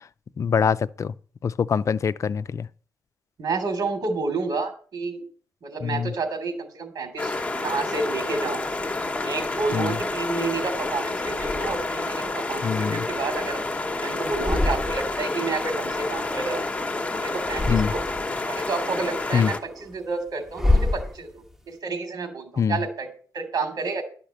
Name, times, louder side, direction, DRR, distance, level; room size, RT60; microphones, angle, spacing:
voice 1, 0.4-1.1 1.4-2.7 5.8-6.1 9.7-10.0 12.6-13.1 17.7-17.9 19.3-19.5 22.6-22.8, left 6 dB, 45° left, 0.5 m, -24 dB
voice 2, 3.4-5.2 5.6-8.6 9.2-13.6 14.0-16.7 17.1-18.0 18.5-23.1 23.3-24.0, right 4 dB, 65° right, 3.1 m, -30 dB
sound 1, 7.2-19.6, left 2 dB, 20° left, 1.1 m, -29 dB
sound 2, 9.3-10.5 11.2-12.2 12.6-13.9 14.2-15.3 15.6-17.0 17.4-18.4 18.9-21.6, left 2 dB, 5° right, 1.1 m, -29 dB
12.0 x 5.8 x 7.8 m
wide cardioid pair, 140°, 8 cm